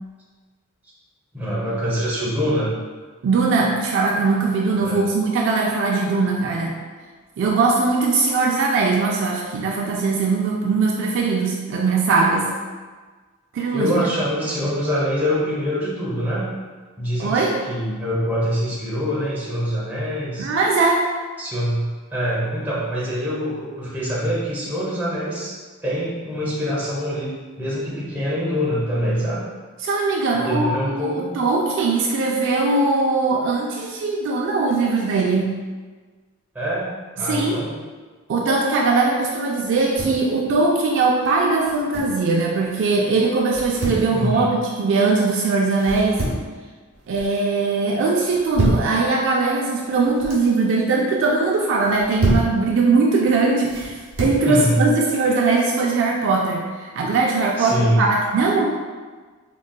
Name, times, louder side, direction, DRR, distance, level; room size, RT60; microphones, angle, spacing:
voice 1, 1.3-2.7 4.8-5.1 13.7-16.5 17.0-20.5 21.4-25.6 25.8-27.3 27.6-29.4 30.3-31.3 36.5-37.7 44.1-44.5 54.5-54.8 57.6-58.1, equal, 10° right, -7 dB, 0.7 m, -24 dB
voice 2, 3.2-6.8 7.4-12.5 13.5-14.1 14.6-14.7 17.2-17.6 20.4-21.1 29.8-35.5 37.2-37.6 38.3-46.2 47.1-58.7, right 3 dB, 60° right, -2 dB, 0.3 m, -20 dB
sound 1, 39.7-40.3 41.6-42.2 43.5-44.1 45.8-46.5 46.9-47.4 48.2-48.9 49.9-50.5 51.8-52.5 53.7-54.4, right 1 dB, 85° right, 0.7 m, -26 dB
3.8 x 2.3 x 2.2 m, 1.4 s
head